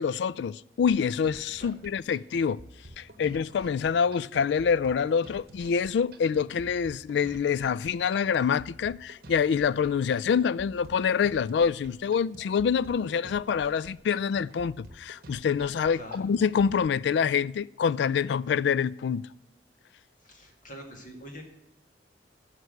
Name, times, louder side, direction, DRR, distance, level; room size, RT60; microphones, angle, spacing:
voice 1, 0.0-2.6 3.0-19.3, left 6 dB, 65° left, 0.3 m, -26 dB
sound 1, 0.9-16.9, right 1 dB, 50° right, 1.0 m, -50 dB
voice 2, 15.9-16.3 20.2-21.4, equal, 45° left, 2.0 m, -45 dB
9.6 x 5.9 x 7.8 m
head